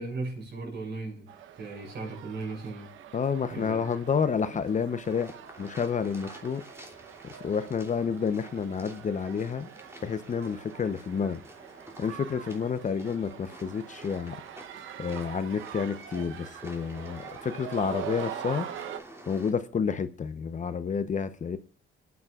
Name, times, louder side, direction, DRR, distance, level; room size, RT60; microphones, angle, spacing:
voice 1, 0.0-2.9 3.5-3.8, right 3 dB, 60° right, 6.9 m, -37 dB
sound 1, 1.3-19.0, right 10 dB, 80° right, 1.0 m, -44 dB
voice 2, 3.1-5.3 5.6-6.6 7.2-9.7 10.0-11.4 12.0-14.6 15.0-18.7 19.3-21.6, left 6 dB, 40° left, 0.8 m, -30 dB
sound 2, 5.0-19.5, right 1 dB, 15° right, 3.1 m, -50 dB
27.0 x 9.6 x 2.4 m
cardioid pair, 90°, 20 cm